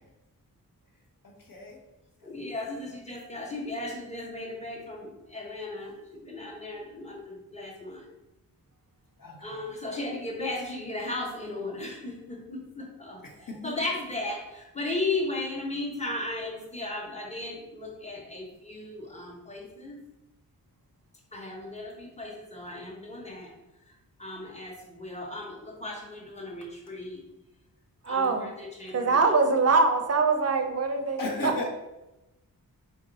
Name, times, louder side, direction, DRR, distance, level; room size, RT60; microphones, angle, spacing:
voice 1, 1.2-1.8 2.2-2.8 9.2-9.6 13.2-13.8 31.2-31.7, left 2 dB, 60° left, 0 dB, 1.1 m, -36 dB
voice 2, 2.2-8.0 9.4-13.2 13.6-20.0 21.3-23.5 24.2-27.2 28.1-29.2, left 2 dB, 20° left, -2 dB, 1.1 m, -36 dB
voice 3, 28.0-28.5 28.9-31.2, right 4 dB, 40° right, 6 dB, 0.6 m, -23 dB
4.5 x 2.6 x 3.9 m, 0.98 s
wide cardioid pair, 100°, 37 cm